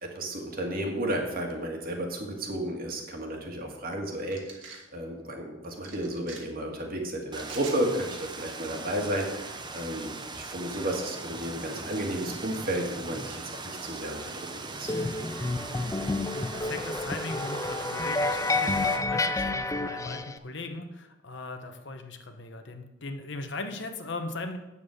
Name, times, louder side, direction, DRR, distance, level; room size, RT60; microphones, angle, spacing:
voice 1, 0.0-4.4 4.9-15.1, right 1 dB, 45° right, 2 dB, 1.9 m, -33 dB
sound 1, 4.3-4.8 5.8-6.4 7.4-7.8, right 5 dB, 65° right, 2.0 m, -44 dB
sound 2, 7.3-19.0, right 3 dB, 20° right, 0.8 m, -40 dB
sound 3, 14.9-20.4, left 2 dB, 15° left, 0.4 m, -29 dB
voice 2, 16.3-24.6, left 3 dB, 60° left, 6 dB, 1.0 m, -38 dB
8.8 x 7.2 x 6.5 m, 1.0 s
head